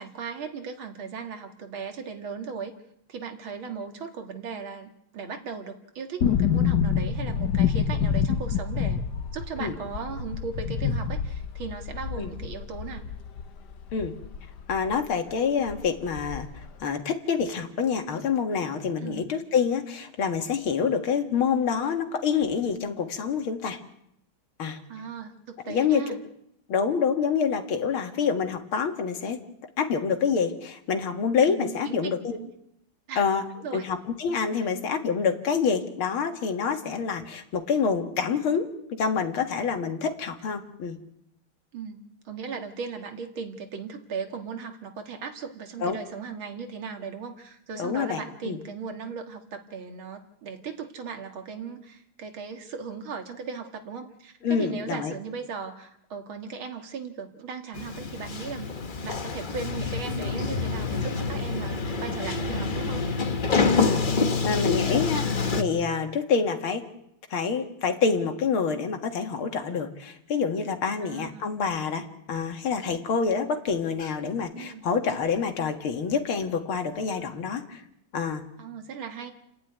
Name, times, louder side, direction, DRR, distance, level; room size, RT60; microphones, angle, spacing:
voice 1, 0.0-2.7 3.1-9.0 9.3-13.0 19.0-19.3 24.9-26.2 31.6-32.1 32.4-32.5 33.1-33.2 33.5-33.8 41.7-58.7 59.0-63.1 71.0-71.5 74.6-74.8 78.6-79.3, right 5 dB, 75° right, 5 dB, 2.6 m, -37 dB
sound 1, 6.2-15.0 15.3-15.4 15.7-16.7 17.0-17.1, left 7 dB, 60° left, 1.5 m, -27 dB
voice 2, 14.7-16.5 16.8-23.8 24.6-24.8 25.7-26.0 26.7-29.4 29.8-32.4 33.2-33.5 33.7-41.0 45.8-46.0 47.8-48.6 54.4-55.1 63.8-65.3 65.5-66.9 67.3-77.8 78.1-78.5, left 6 dB, 85° left, 5 dB, 2.7 m, -27 dB
Sliding door, 57.7-65.6, left 4 dB, 35° left, 0.9 m, -27 dB
29.5 x 11.0 x 9.5 m, 0.77 s
omnidirectional pair, 2.3 m